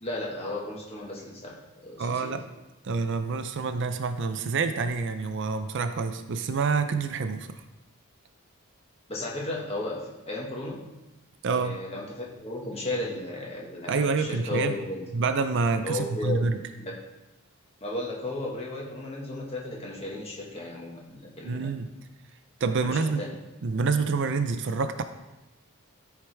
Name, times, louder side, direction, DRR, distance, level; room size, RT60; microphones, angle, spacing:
voice 1, 0.0-2.4 9.1-10.8 11.5-15.0 15.8-16.5 16.8-17.0 17.8-21.7 22.9-23.3, left 2 dB, 30° left, -3 dB, 1.6 m, -34 dB
voice 2, 2.0-2.4 2.8-7.6 11.4-11.8 13.9-14.8 15.1-16.6 21.4-21.9 22.6-23.2 23.6-25.0, right 4 dB, 55° right, 9 dB, 0.5 m, -27 dB
13.5 x 4.7 x 3.4 m, 1.0 s
head